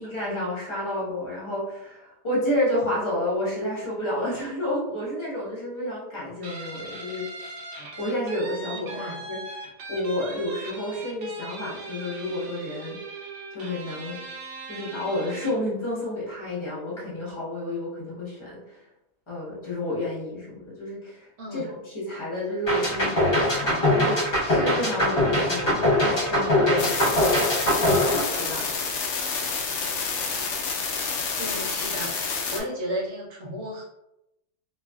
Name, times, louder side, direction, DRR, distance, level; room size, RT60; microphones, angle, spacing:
voice 1, 0.0-7.6 8.0-9.0 9.3-13.0 13.5-14.2 14.7-18.8 19.3-28.7, left 1 dB, 25° left, -7 dB, 0.8 m, -30 dB
Guitar, 6.4-15.7, right 3 dB, 85° right, 0.5 m, -40 dB
voice 2, 8.7-9.2 21.4-21.6 23.7-23.8 31.4-33.8, equal, 55° right, -4 dB, 0.9 m, -34 dB
sound 1, 22.7-28.9, left 1 dB, 40° left, 1.2 m, -22 dB
sound 2, 26.8-32.6, left 5 dB, 85° left, 0.6 m, -29 dB
3.3 x 2.4 x 2.2 m, 0.87 s
omnidirectional pair, 1.8 m